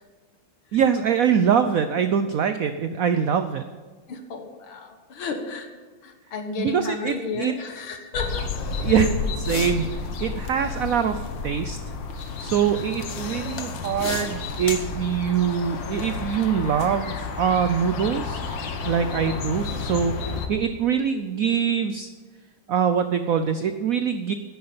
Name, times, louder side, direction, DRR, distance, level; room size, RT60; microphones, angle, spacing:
voice 1, 0.7-3.6 6.6-7.5 8.8-9.1 9.5-9.9 10.2-11.8 12.4-22.1 22.7-24.3, right 7 dB, 80° right, 9 dB, 0.7 m, -23 dB
voice 2, 4.1-5.7 6.0-8.5 8.8-9.1, left 4 dB, 80° left, 5 dB, 2.3 m, -33 dB
sound 1, 8.1-20.5, left 4 dB, 65° left, 1.8 m, -31 dB
10.5 x 9.6 x 8.6 m, 1.4 s
omnidirectional pair, 2.2 m